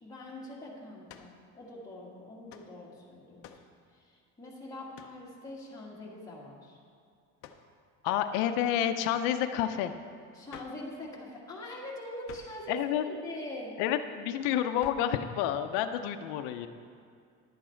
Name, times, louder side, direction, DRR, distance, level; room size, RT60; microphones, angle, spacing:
voice 1, 0.0-3.5 3.9-6.8 10.3-13.7, left 1 dB, 10° left, -5 dB, 1.6 m, -43 dB
sound 1, 1.1-1.4 2.5-2.7 3.4-3.7 4.9-5.2 7.4-7.7 10.5-10.9 12.2-12.6 14.8-15.2, left 8 dB, 45° left, 0.6 m, -50 dB
voice 2, 8.0-9.9 12.7-13.1 13.8-16.7, left 10 dB, 90° left, 8 dB, 0.6 m, -29 dB
10.5 x 8.5 x 4.4 m, 2.3 s
cardioid pair, 170°, 31 cm